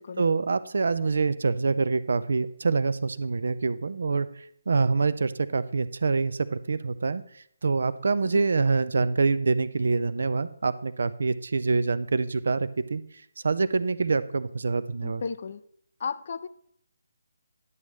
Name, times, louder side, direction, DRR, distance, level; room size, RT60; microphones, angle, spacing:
voice 1, 0.2-7.2 7.6-13.0 13.4-15.2, right 4 dB, 60° right, 15 dB, 0.5 m, -25 dB
voice 2, 15.0-15.6 16.0-16.5, left 5 dB, 50° left, 15 dB, 0.4 m, -34 dB
11.0 x 7.1 x 3.1 m, 0.70 s
figure-of-eight pair, 145°, 0 cm